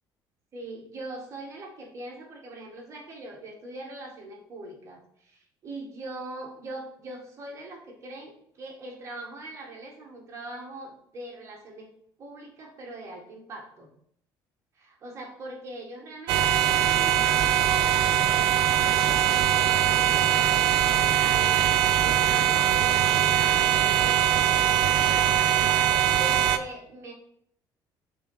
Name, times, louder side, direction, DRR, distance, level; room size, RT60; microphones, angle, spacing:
voice 1, 0.5-11.9 12.2-13.9 14.7-25.6 26.1-27.1, right 2 dB, 35° right, 0 dB, 1.5 m, -41 dB
sound 1, 16.3-26.6, right 11 dB, 70° right, 0.5 m, -22 dB
6.2 x 3.7 x 4.0 m, 0.68 s
cardioid pair, 145°, 8 cm